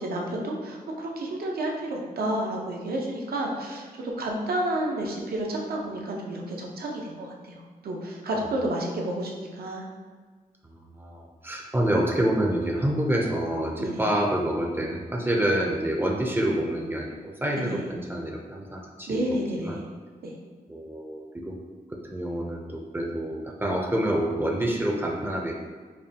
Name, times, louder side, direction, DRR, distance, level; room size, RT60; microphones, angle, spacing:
voice 1, 0.0-9.8 13.8-14.1 17.6-17.9 19.1-19.8 20.2-20.3, right 1 dB, 85° right, -1 dB, 0.7 m, -31 dB
voice 2, 10.6-19.8 20.7-21.6 21.9-25.5, right 1 dB, 15° right, -1 dB, 0.4 m, -27 dB
5.2 x 2.2 x 2.7 m, 1.5 s
wide cardioid pair, 150°, 15 cm